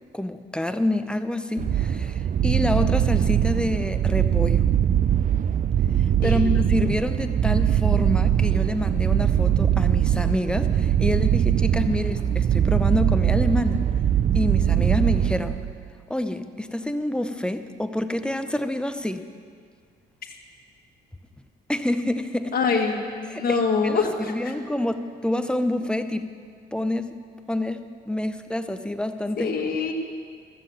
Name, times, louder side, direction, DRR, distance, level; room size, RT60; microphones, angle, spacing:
voice 1, 0.1-4.7 6.2-13.8 14.3-15.6 16.1-19.3 21.7-22.6 23.3-26.3 26.7-27.2 27.5-29.5, left 1 dB, 5° left, 9 dB, 0.7 m, -27 dB
sound 1, 1.6-15.8, right 10 dB, 40° right, 0.4 m, -21 dB
voice 2, 22.5-24.5 29.4-29.9, left 5 dB, 50° left, 1 dB, 1.7 m, -25 dB
13.5 x 7.3 x 7.7 m, 2.1 s
cardioid pair, 90°, 20 cm